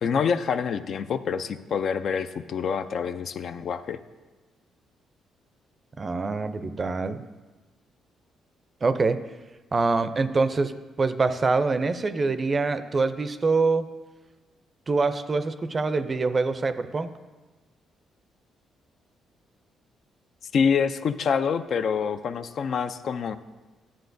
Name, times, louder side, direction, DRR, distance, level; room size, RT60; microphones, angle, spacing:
voice 1, 0.0-4.0 20.5-23.4, left 6 dB, 60° left, 10 dB, 0.4 m, -26 dB
voice 2, 6.0-7.2 8.8-9.2 9.7-13.9 14.9-17.1, right 3 dB, 35° right, 11 dB, 0.4 m, -25 dB
11.5 x 7.4 x 2.6 m, 1.2 s
cardioid pair, 90°, 0 cm